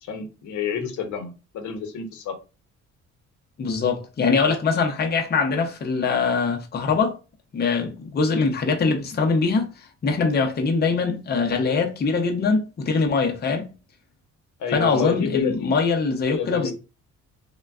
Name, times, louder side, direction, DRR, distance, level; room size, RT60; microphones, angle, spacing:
voice 1, 0.0-2.4 14.6-15.7 16.3-16.7, left 7 dB, 75° left, 0.8 m, -29 dB
voice 2, 3.6-7.2 7.5-13.7 14.7-16.7, left 4 dB, 35° left, 0.6 m, -23 dB
3.3 x 2.2 x 2.3 m
cardioid pair, 90°, 30 cm